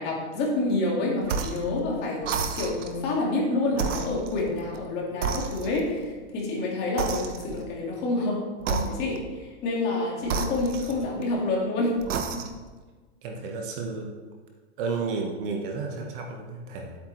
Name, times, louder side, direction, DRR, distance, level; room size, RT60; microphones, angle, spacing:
voice 1, 0.0-8.4 8.7-12.0 12.3-12.5, left 2 dB, 30° left, -3 dB, 2.0 m, -28 dB
sound 1, 1.2-1.7 2.2-3.0 3.7-4.8 5.2-6.0 7.0-7.7 8.6-9.3 10.2-11.4 12.0-12.7, right 5 dB, 85° right, 1.1 m, -31 dB
voice 2, 13.2-14.1 14.8-17.0, right 4 dB, 45° right, 2 dB, 1.3 m, -32 dB
10.0 x 8.4 x 3.2 m, 1.3 s
supercardioid pair, 165°, 36 cm